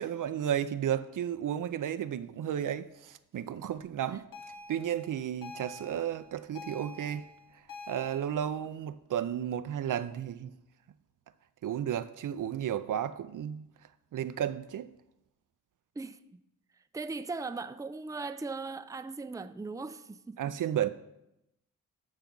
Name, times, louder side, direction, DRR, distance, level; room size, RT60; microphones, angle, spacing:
voice 1, 0.0-4.3 4.7-7.3 7.9-10.6 11.6-13.7 14.1-14.9 20.4-20.9, right 10 dB, 65° right, 0.5 m, -33 dB
sound 1, 4.3-8.2, left 2 dB, 70° left, 1.3 m, -47 dB
voice 2, 15.9-16.4 16.7-20.4, right 3 dB, 10° right, 0.5 m, -39 dB
13.0 x 5.7 x 3.8 m
cardioid pair, 50°, 34 cm